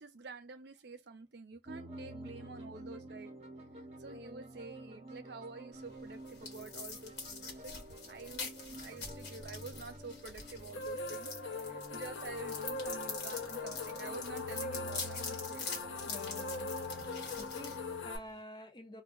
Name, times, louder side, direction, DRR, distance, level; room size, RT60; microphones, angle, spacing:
voice 1, 0.0-3.3 4.0-15.7, right 3 dB, 55° right, 0.5 m, -49 dB
sound 1, 1.7-18.1, right 1 dB, 35° right, 0.8 m, -49 dB
sound 2, 5.7-18.4, left 4 dB, 55° left, 1.2 m, -45 dB
sound 3, 10.7-18.2, left 3 dB, 75° left, 0.6 m, -41 dB
voice 2, 16.1-16.7 17.4-19.0, left 1 dB, 25° left, 0.6 m, -49 dB
2.4 x 2.1 x 3.6 m
head